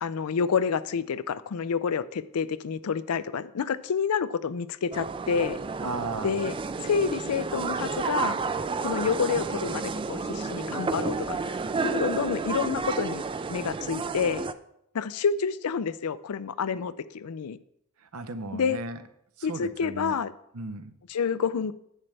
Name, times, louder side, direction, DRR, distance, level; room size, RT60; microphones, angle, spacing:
voice 1, 0.0-5.6 6.2-6.6 6.8-8.4 8.8-13.2 13.5-14.4 14.9-17.6 18.5-18.8 19.4-20.3 21.1-21.7, left 6 dB, 85° left, 16 dB, 0.4 m, -28 dB
sound 1, 4.9-14.5, right 4 dB, 25° right, 0.3 m, -31 dB
voice 2, 5.8-6.3 18.1-19.0 19.4-20.1 20.5-20.9, right 3 dB, 80° right, 10 dB, 0.7 m, -35 dB
11.0 x 8.8 x 3.3 m, 0.77 s
head